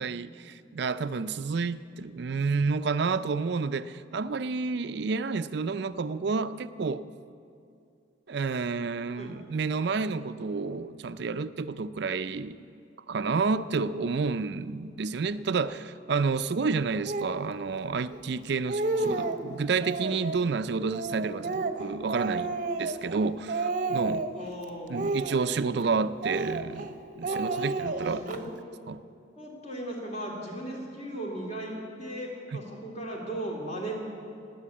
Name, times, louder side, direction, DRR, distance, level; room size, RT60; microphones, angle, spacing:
voice 1, 0.0-7.0 8.3-12.6 13.1-24.3 24.9-28.2 28.9-29.0, right 4 dB, 60° right, 13 dB, 0.4 m, -30 dB
Speech, 17.1-17.4 18.1-18.2 18.5-19.4 19.8-20.4 20.9-23.2 23.5-24.4 24.9-25.9 26.2-26.9 27.2-28.4, right 3 dB, 40° right, 0.8 m, -31 dB
voice 2, 18.9-19.3 24.3-25.0 27.3-27.4 28.1-28.4 29.4-33.9, right 1 dB, 35° left, -1 dB, 2.8 m, -37 dB
20.0 x 8.6 x 8.4 m, 2.5 s
head